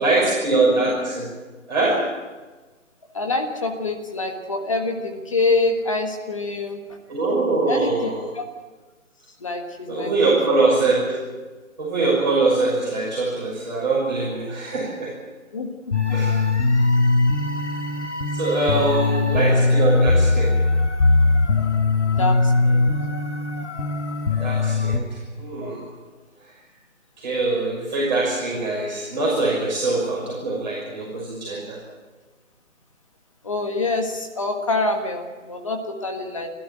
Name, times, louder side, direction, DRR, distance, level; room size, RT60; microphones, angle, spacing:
voice 1, 0.0-1.3 1.7-2.1 7.1-8.3 9.9-11.2 11.8-15.2 16.1-16.4 18.3-20.6 24.4-25.9 27.2-31.8, right 3 dB, 35° right, -6 dB, 6.2 m, -23 dB
voice 2, 3.1-7.0 7.7-8.4 9.4-10.3 15.5-15.7 16.1-16.4 18.7-19.2 21.5-21.6 22.0-23.0 25.6-25.7 29.4-29.5 33.4-36.5, left 2 dB, 25° left, 4 dB, 1.6 m, -26 dB
sound 1, 15.9-25.0, left 3 dB, 55° left, 2.4 m, -20 dB
30.0 x 12.5 x 9.0 m, 1.3 s
figure-of-eight pair, 175°, 40 cm